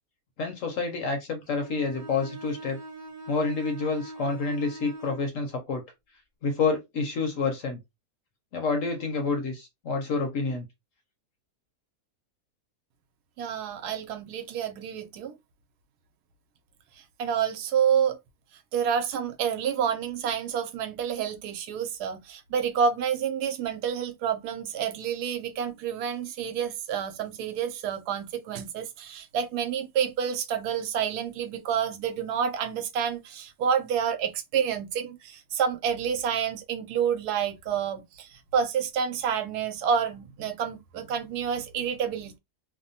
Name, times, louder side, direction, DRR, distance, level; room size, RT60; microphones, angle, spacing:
voice 1, 0.4-2.8 3.3-5.8 6.4-7.8 8.5-10.7, left 4 dB, 60° left, 1.0 m, -28 dB
Bowed string instrument, 1.5-5.3, right 2 dB, 30° right, 1.1 m, -43 dB
voice 2, 13.4-15.3 17.2-18.2 18.7-42.4, right 7 dB, 80° right, 1.1 m, -29 dB
2.8 x 2.1 x 2.7 m
omnidirectional pair, 1.7 m